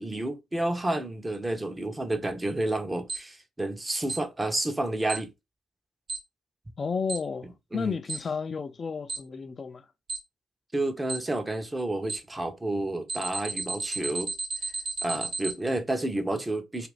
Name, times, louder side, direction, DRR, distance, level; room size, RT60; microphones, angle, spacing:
voice 1, 0.0-5.3 7.7-7.9 10.7-14.3 15.0-16.9, right 2 dB, 15° right, 0.7 m, -30 dB
Alarm, 3.1-3.2 4.1-4.2 5.1-5.2 6.1-6.2 7.1-7.2 8.1-8.2 9.1-9.2 10.1-10.2 11.1-11.2 12.1-12.2 13.1-15.5, right 3 dB, 60° right, 0.9 m, -32 dB
voice 2, 6.8-9.9, left 5 dB, 45° left, 0.4 m, -32 dB
2.4 x 2.4 x 3.3 m
supercardioid pair, 65°, 0 cm